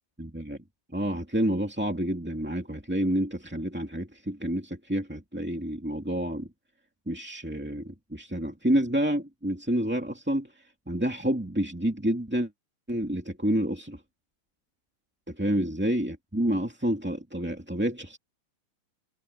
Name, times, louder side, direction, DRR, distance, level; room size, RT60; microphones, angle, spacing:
voice 1, 0.2-0.6 0.9-6.5 7.0-10.5 10.9-12.5 12.9-14.0 15.3-18.2, right 1 dB, 5° right, 1.3 m, -29 dB
omnidirectional pair, 4.0 m